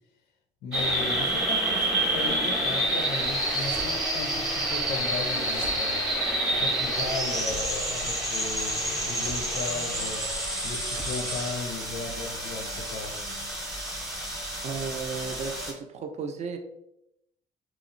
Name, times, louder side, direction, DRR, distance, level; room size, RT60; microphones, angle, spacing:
voice 1, 0.6-6.1 6.5-10.3 10.6-13.2, left 4 dB, 75° left, 4 dB, 0.5 m, -36 dB
sound 1, 0.7-15.7, right 1 dB, 5° right, 0.8 m, -28 dB
sound 2, 3.2-4.0 5.1-5.8 7.0-7.7 8.7-9.5 10.4-12.0, right 3 dB, 85° right, 0.6 m, -43 dB
voice 2, 14.6-16.6, right 5 dB, 40° right, 5 dB, 0.4 m, -34 dB
2.9 x 2.0 x 2.5 m, 0.79 s
cardioid pair, 110°, 17 cm